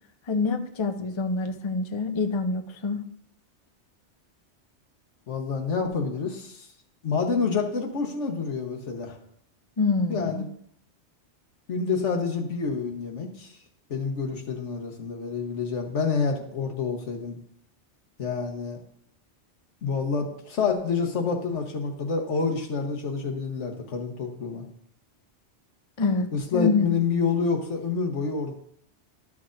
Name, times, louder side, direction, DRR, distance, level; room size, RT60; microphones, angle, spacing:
voice 1, 0.3-3.0 9.8-10.4 26.0-26.3 26.5-26.9, left 4 dB, 35° left, 7 dB, 0.5 m, -26 dB
voice 2, 5.3-6.7 7.0-9.2 10.1-10.5 11.7-13.6 13.9-17.4 18.2-18.8 19.8-24.6 26.3-28.6, left 5 dB, 85° left, 3 dB, 1.4 m, -28 dB
12.0 x 6.1 x 2.5 m, 0.67 s
omnidirectional pair, 1.2 m